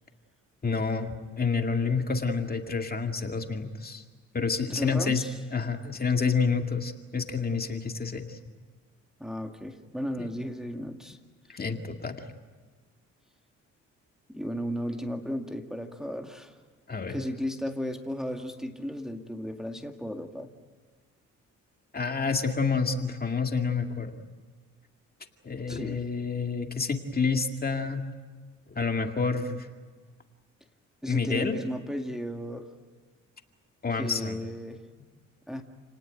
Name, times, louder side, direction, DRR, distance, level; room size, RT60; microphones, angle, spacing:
voice 1, 0.6-4.0 4.3-5.2 5.5-8.4 10.2-10.3 11.5-12.3 16.9-17.2 21.9-24.2 25.4-28.1 28.7-29.7 31.1-31.5 33.8-34.4, left 5 dB, 30° left, 5 dB, 2.2 m, -28 dB
voice 2, 4.7-5.3 9.2-11.2 14.3-16.6 17.1-20.5 25.7-26.0 31.0-32.7 34.0-34.8 35.5-35.6, equal, ahead, 3 dB, 2.1 m, -35 dB
29.5 x 19.0 x 9.1 m, 1.5 s
cardioid pair, 90°, 30 cm